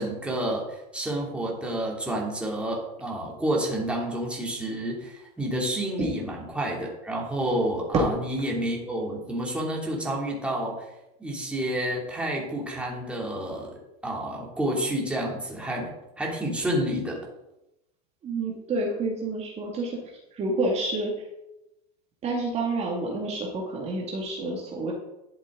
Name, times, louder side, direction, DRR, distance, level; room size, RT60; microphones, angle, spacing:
voice 1, 0.0-10.9 11.2-13.7 14.0-15.9 16.2-17.2, right 1 dB, 5° right, -3 dB, 2.9 m, -29 dB
voice 2, 18.2-21.3 22.2-24.9, right 2 dB, 30° right, -2 dB, 2.2 m, -29 dB
11.5 x 7.6 x 3.9 m, 0.91 s
supercardioid pair, 120°, 21 cm